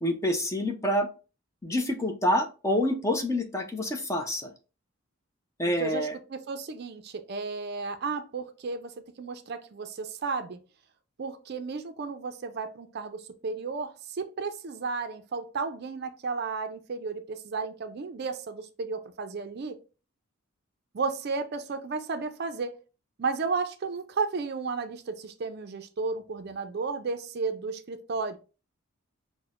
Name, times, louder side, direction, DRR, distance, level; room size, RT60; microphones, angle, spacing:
voice 1, 0.0-1.1 1.6-4.5 5.6-6.1, left 1 dB, 15° left, 0.4 m, -27 dB
voice 2, 5.8-10.6 11.2-19.8 20.9-22.7 23.2-28.4, right 4 dB, 50° right, 0.4 m, -33 dB
5.8 x 2.1 x 2.4 m
head